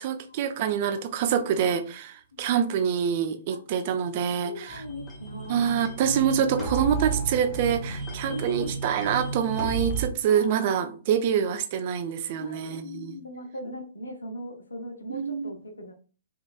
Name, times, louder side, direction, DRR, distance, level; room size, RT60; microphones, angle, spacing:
voice 1, 0.0-4.8 5.5-13.2 15.1-15.5, right 8 dB, 40° right, 0.4 m, -26 dB
voice 2, 2.3-2.6 3.5-3.6 4.4-5.7 6.0-6.2 6.6-6.7 8.2-8.7 10.3-10.7 12.4-15.9, left 1 dB, 70° left, 0.7 m, -39 dB
sound 1, 4.7-10.1, right 4 dB, 10° left, 0.9 m, -33 dB
3.8 x 2.5 x 2.4 m
figure-of-eight pair, 120°, 0 cm